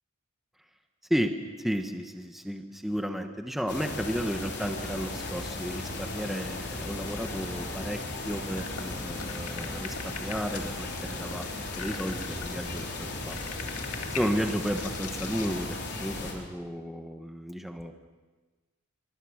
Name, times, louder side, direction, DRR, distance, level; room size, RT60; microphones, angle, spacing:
voice 1, 1.6-11.5 11.8-13.4 14.2-17.9, equal, ahead, 6 dB, 1.2 m, -33 dB
sound 1, 3.7-16.3, left 2 dB, 50° left, 4.2 m, -36 dB
sound 2, 8.6-15.6, left 6 dB, 85° left, 2.2 m, -43 dB
24.0 x 24.0 x 6.5 m, 1.3 s
head